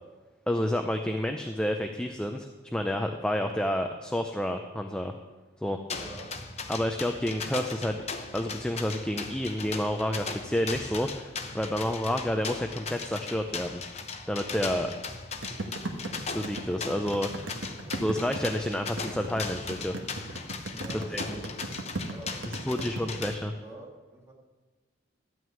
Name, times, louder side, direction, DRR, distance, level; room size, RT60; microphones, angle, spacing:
voice 1, 0.5-5.1 5.6-5.8 6.7-8.0 8.3-13.8 14.3-14.9 16.3-17.6 18.0-20.0 20.9-21.4 22.7-23.5, equal, 5° left, 4 dB, 0.5 m, -29 dB
sound 1, 5.9-23.3, left 4 dB, 30° left, 0.9 m, -38 dB
voice 2, 5.9-6.4 17.8-18.2 20.7-21.7 22.1-24.3, right 1 dB, 15° right, -2 dB, 2.4 m, -48 dB
sound 2, 15.4-23.0, right 2 dB, 75° right, 1.5 m, -37 dB
12.5 x 6.3 x 8.9 m, 1.3 s
head